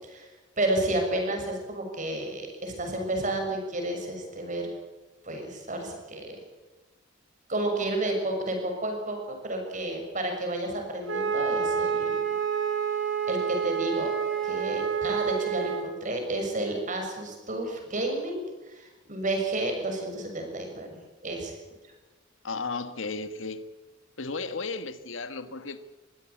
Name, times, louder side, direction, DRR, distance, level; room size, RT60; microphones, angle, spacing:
voice 1, 0.6-4.7 5.2-6.4 7.5-12.2 13.3-14.1 14.4-18.4 18.7-21.5, right 1 dB, 40° right, 3 dB, 6.5 m, -31 dB
Wind instrument woodwind instrument, 11.1-15.9, right 7 dB, 85° right, 5.2 m, -28 dB
voice 2, 22.4-23.7 24.2-25.8, left 3 dB, 85° left, 12 dB, 1.5 m, -34 dB
23.0 x 16.5 x 8.5 m, 1.2 s
head